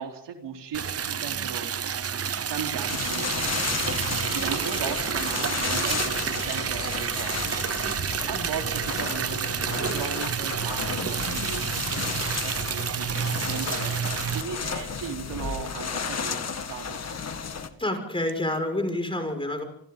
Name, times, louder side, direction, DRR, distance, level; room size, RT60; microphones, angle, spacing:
voice 1, 0.0-1.7 2.5-3.6 4.1-8.0 8.3-17.0, right 7 dB, 70° right, 3 dB, 3.9 m, -37 dB
Liquid, 0.7-14.4, right 8 dB, 35° right, 0.8 m, -29 dB
sound 1, 2.9-17.7, left 5 dB, 35° left, 2.0 m, -33 dB
voice 2, 17.8-19.6, left 1 dB, 10° left, 5 dB, 5.8 m, -28 dB
28.5 x 24.0 x 3.9 m, 0.65 s
cardioid pair, 115°, 44 cm